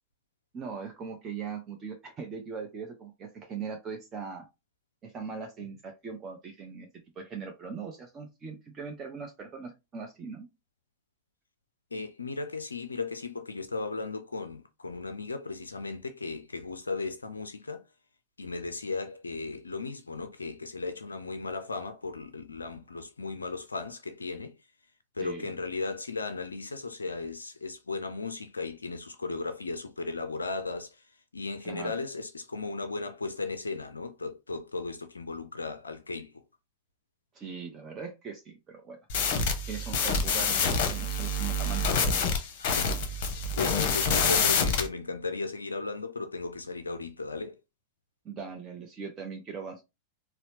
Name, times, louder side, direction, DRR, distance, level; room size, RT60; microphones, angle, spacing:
voice 1, 0.5-4.5 5.0-6.9 7.2-10.5 25.2-25.5 31.6-32.0 37.3-39.0 39.7-42.3 48.2-49.8, right 6 dB, 25° right, 0.6 m, -40 dB
voice 2, 11.9-17.8 18.4-24.5 25.2-31.0 31.3-36.3 42.6-47.6, left 3 dB, 75° left, 0.3 m, -36 dB
sound 1, 39.1-44.9, left 4 dB, 45° left, 0.7 m, -27 dB
4.1 x 2.0 x 2.8 m
figure-of-eight pair, 90°, 0 cm